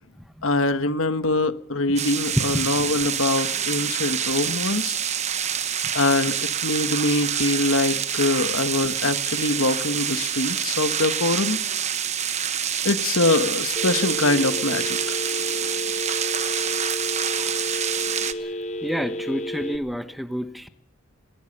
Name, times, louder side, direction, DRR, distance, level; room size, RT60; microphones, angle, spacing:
voice 1, 0.4-5.0 5.9-6.4 6.6-11.6 12.8-15.1, left 2 dB, 70° left, 10 dB, 1.4 m, -23 dB
sound 1, 2.0-18.3, right 8 dB, 30° right, 1.1 m, -26 dB
Telephone, 13.8-19.8, equal, 30° left, 1.3 m, -31 dB
voice 2, 18.8-20.7, equal, ahead, 9 dB, 1.0 m, -29 dB
22.0 x 19.0 x 6.8 m, 0.69 s
head